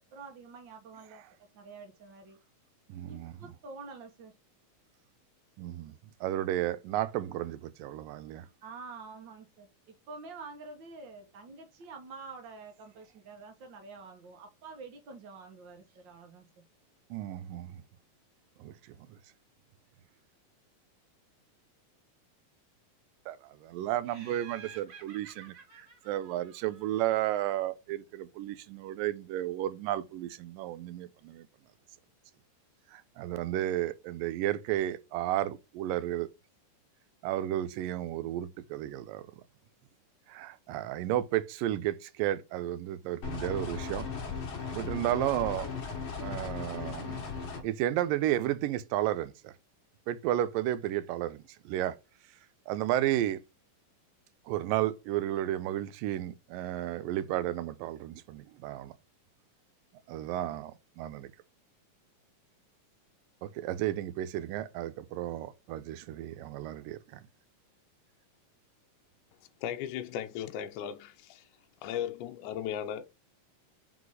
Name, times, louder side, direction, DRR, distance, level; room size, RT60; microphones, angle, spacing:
voice 1, 0.1-1.2 1.5-2.4 3.1-4.3 8.6-16.6, right 4 dB, 60° right, 1.2 m, -47 dB
voice 2, 2.9-3.5 5.6-6.0 6.2-8.5 17.1-17.8 18.6-19.2 23.3-23.4 23.7-31.5 32.9-36.3 37.2-39.2 40.3-44.1 44.7-45.7 46.2-47.2 47.6-49.5 50.1-52.0 52.7-53.4 54.5-58.9 60.1-61.3 63.4-67.2, right 13 dB, 85° right, 2.3 m, -33 dB
Laughter, 24.0-27.4, right 6 dB, 40° right, 1.9 m, -52 dB
sound 1, 43.2-47.6, left 5 dB, 50° left, 1.7 m, -37 dB
voice 3, 69.6-71.5 71.8-73.1, left 10 dB, 80° left, 2.0 m, -36 dB
5.4 x 4.0 x 4.7 m
omnidirectional pair, 3.9 m